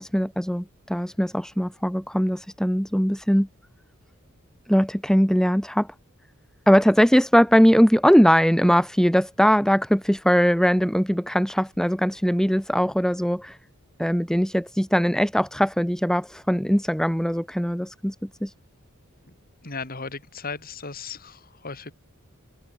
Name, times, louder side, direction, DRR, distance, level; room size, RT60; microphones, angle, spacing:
voice 1, 0.0-3.5 4.7-5.9 6.7-13.6 14.0-18.5, equal, 5° left, 2.8 m, -20 dB
voice 2, 19.6-21.9, left 4 dB, 45° left, 4.3 m, -36 dB
head